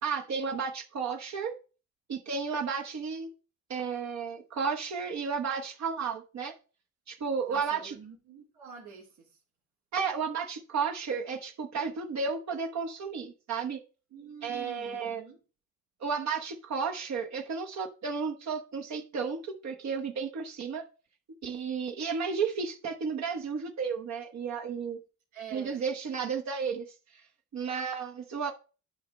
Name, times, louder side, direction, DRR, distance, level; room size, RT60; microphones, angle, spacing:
voice 1, 0.0-1.5 2.1-3.3 3.7-6.5 7.1-7.9 9.9-13.8 14.4-15.2 16.0-20.8 21.4-25.0 25.5-26.9 27.1-27.2 27.5-28.5, right 5 dB, 65° right, 1.1 m, -33 dB
voice 2, 7.5-9.4 14.1-15.4 25.3-25.9, right 7 dB, 85° right, 2.5 m, -47 dB
10.5 x 5.3 x 3.2 m
cardioid pair, 90°, 30 cm